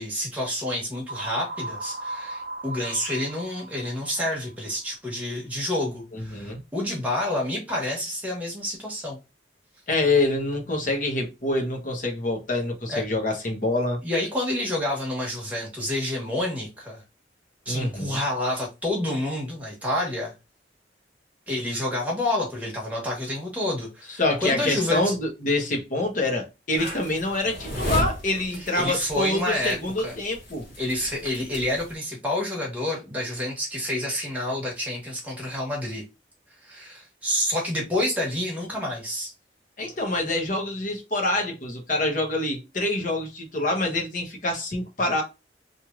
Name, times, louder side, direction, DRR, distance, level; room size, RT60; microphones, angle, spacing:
voice 1, 0.0-9.2 12.9-13.0 14.0-17.0 17.6-20.3 21.5-25.1 28.5-29.8 30.0-30.1 30.8-36.0 36.6-39.3, left 1 dB, 10° right, 1.3 m, -28 dB
sound 1, 1.1-4.9, right 2 dB, 50° right, 0.5 m, -37 dB
voice 2, 6.1-6.6 9.9-14.0 17.7-18.2 24.2-30.7 39.8-45.2, left 2 dB, 45° left, 0.9 m, -26 dB
sound 2, 26.8-31.9, equal, 70° left, 1.1 m, -34 dB
3.0 x 2.6 x 2.3 m
head